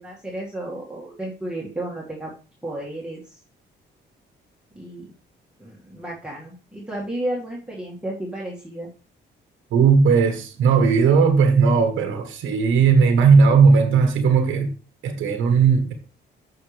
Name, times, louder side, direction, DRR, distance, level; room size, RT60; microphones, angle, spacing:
voice 1, 0.0-2.3 2.6-3.4 4.7-5.1 5.6-8.9, right 1 dB, 5° right, -5 dB, 2.1 m, -32 dB
voice 2, 9.7-14.7 15.0-15.9, right 5 dB, 80° right, 6 dB, 1.4 m, -17 dB
9.3 x 5.8 x 3.4 m, 0.34 s
cardioid pair, 90°, 20 cm